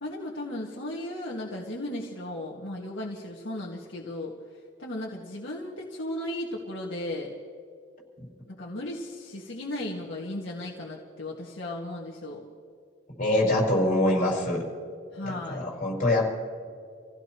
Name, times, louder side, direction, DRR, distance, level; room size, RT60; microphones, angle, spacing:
voice 1, 0.0-4.3 4.8-7.3 8.5-12.5 15.1-15.7, left 1 dB, 75° left, -4 dB, 2.0 m, -35 dB
voice 2, 13.2-14.6 15.2-16.3, left 1 dB, 40° left, -3 dB, 5.2 m, -24 dB
28.5 x 16.5 x 3.1 m, 2.3 s
head